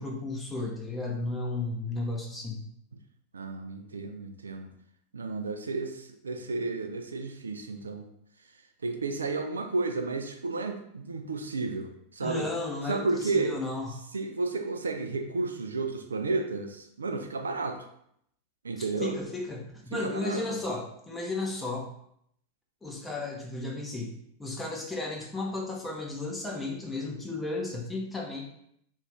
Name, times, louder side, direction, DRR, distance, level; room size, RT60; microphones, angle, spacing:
voice 1, 0.0-2.6 12.2-14.1 18.8-21.9 22.8-28.4, left 2 dB, 10° left, -1 dB, 0.6 m, -34 dB
voice 2, 3.3-4.7 5.1-8.1 8.8-12.5 12.9-13.6 14.1-17.8 18.6-19.2 19.9-20.6, right 3 dB, 75° right, 6 dB, 0.3 m, -32 dB
2.4 x 2.4 x 3.3 m, 0.71 s
figure-of-eight pair, 90°, 0 cm